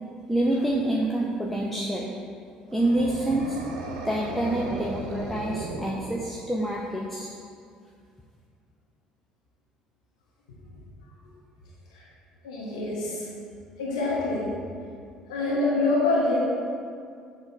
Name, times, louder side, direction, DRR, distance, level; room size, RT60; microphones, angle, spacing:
voice 1, 0.3-2.1 2.7-3.6 4.0-7.3, right 1 dB, 5° left, -4 dB, 0.7 m, -27 dB
sound 1, 2.7-6.6, right 3 dB, 70° right, 0.6 m, -36 dB
voice 2, 12.4-13.3 13.8-14.5 15.3-16.4, left 2 dB, 75° left, -5 dB, 0.9 m, -26 dB
7.4 x 3.1 x 4.9 m, 2.3 s
figure-of-eight pair, 55°, 3 cm